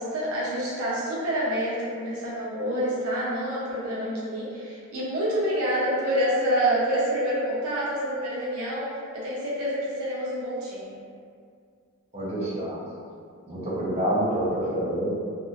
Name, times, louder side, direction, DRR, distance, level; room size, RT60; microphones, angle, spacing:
voice 1, 0.0-11.0, equal, 80° right, -7 dB, 0.7 m, -27 dB
voice 2, 12.1-12.8 13.4-15.1, right 1 dB, 30° right, -10 dB, 0.7 m, -27 dB
2.7 x 2.4 x 2.5 m, 2.2 s
head